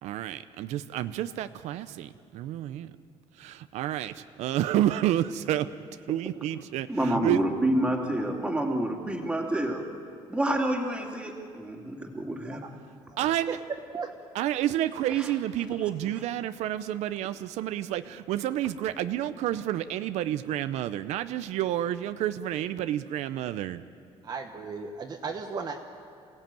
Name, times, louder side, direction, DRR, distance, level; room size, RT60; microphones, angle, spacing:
voice 1, 0.0-2.9 3.4-5.7 6.1-7.4 13.2-13.6 14.3-23.8, right 12 dB, 85° right, 11 dB, 0.6 m, -29 dB
voice 2, 6.9-9.8 10.3-12.6 15.1-15.3, right 1 dB, 10° right, 0 dB, 2.6 m, -28 dB
voice 3, 24.2-25.8, right 5 dB, 35° right, 3 dB, 1.2 m, -35 dB
27.5 x 17.0 x 9.1 m, 2.4 s
cardioid pair, 160°, 11 cm